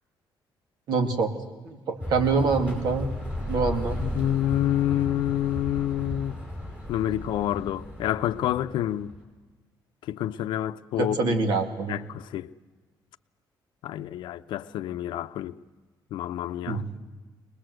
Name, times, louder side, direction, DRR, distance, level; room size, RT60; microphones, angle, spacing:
voice 1, 0.9-1.3 1.6-3.1 3.5-4.0 11.0-12.0 16.7-16.9, right 4 dB, 60° right, 2.4 m, -25 dB
sound 1, 2.0-9.2, left 1 dB, 15° right, 5.5 m, -35 dB
voice 2, 4.0-6.4 6.9-9.1 10.1-11.5 11.9-12.5 13.8-15.5 16.1-16.8, left 12 dB, 75° left, 0.6 m, -28 dB
23.0 x 20.5 x 7.9 m
cardioid pair, 175°, 8 cm